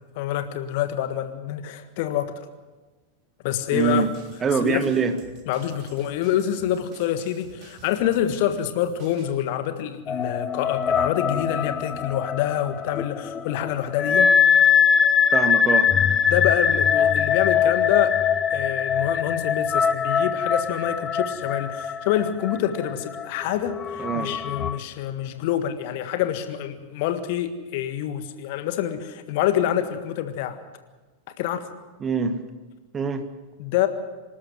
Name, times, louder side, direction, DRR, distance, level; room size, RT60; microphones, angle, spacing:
voice 1, 0.1-2.4 3.4-4.0 4.6-4.9 5.5-14.3 16.3-18.1 18.5-30.6 31.4-31.7 33.6-33.9, left 11 dB, 50° left, 10 dB, 1.6 m, -26 dB
voice 2, 3.7-4.1 4.4-5.1 15.3-15.9 24.0-24.3 32.0-32.4 32.9-33.3, right 5 dB, 20° right, 9 dB, 1.6 m, -24 dB
sound 1, 3.8-9.3, right 4 dB, 40° right, 3.5 m, -49 dB
sound 2, 10.1-24.8, left 7 dB, 20° left, 0.8 m, -22 dB
26.0 x 13.0 x 7.8 m, 1.2 s
figure-of-eight pair, 90°, 0 cm